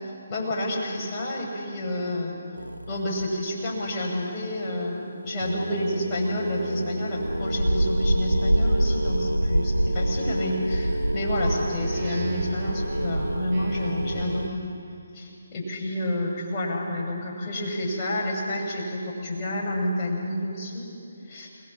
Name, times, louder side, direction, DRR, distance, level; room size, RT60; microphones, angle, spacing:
voice 1, 0.3-2.4 2.9-14.6 15.1-20.9 21.3-21.5, left 1 dB, 20° left, -4 dB, 6.9 m, -29 dB
sound 1, 2.6-3.2 5.4-14.5, right 1 dB, 90° right, 0.8 m, -26 dB
Speech synthesizer, 11.4-14.7, right 2 dB, 30° right, 5.3 m, -39 dB
28.5 x 21.0 x 7.4 m, 2.6 s
figure-of-eight pair, 145°, 0 cm